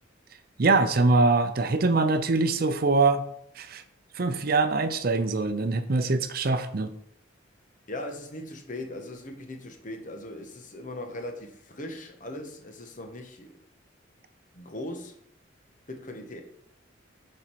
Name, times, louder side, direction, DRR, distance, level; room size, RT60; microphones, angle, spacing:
voice 1, 0.6-3.2 3.6-3.8 4.1-6.9, right 3 dB, 50° right, 0.6 m, -23 dB
voice 2, 7.9-13.5 14.5-15.2 15.9-16.4, left 1 dB, 40° left, 1.2 m, -39 dB
7.2 x 5.3 x 4.6 m
head